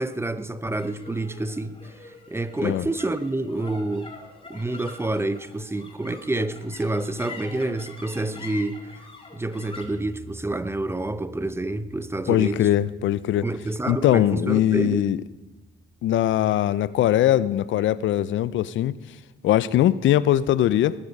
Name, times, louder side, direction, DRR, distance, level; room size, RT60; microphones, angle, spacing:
voice 1, 0.0-4.1 4.5-9.1 9.3-12.7 13.4-15.0, right 2 dB, 10° right, 0.7 m, -28 dB
sound 1, 0.8-17.3, left 2 dB, 25° left, 2.9 m, -45 dB
voice 2, 12.3-13.5 13.9-15.2 16.0-18.9 19.4-21.0, left 12 dB, 75° left, 0.6 m, -21 dB
20.0 x 9.9 x 5.4 m
cardioid pair, 90°, 20 cm